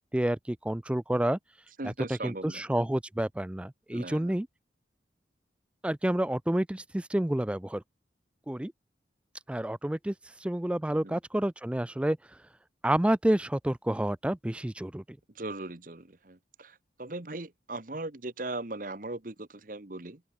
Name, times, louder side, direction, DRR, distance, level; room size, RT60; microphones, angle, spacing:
voice 1, 0.0-1.4 1.8-4.5 5.8-7.8 8.5-8.7 9.5-10.1 10.4-12.2 12.8-15.2, right 1 dB, 5° right, 0.3 m, -29 dB
voice 2, 1.8-2.6 3.9-4.4 11.0-11.2 15.3-20.2, right 2 dB, 50° right, 1.3 m, -39 dB
open air
head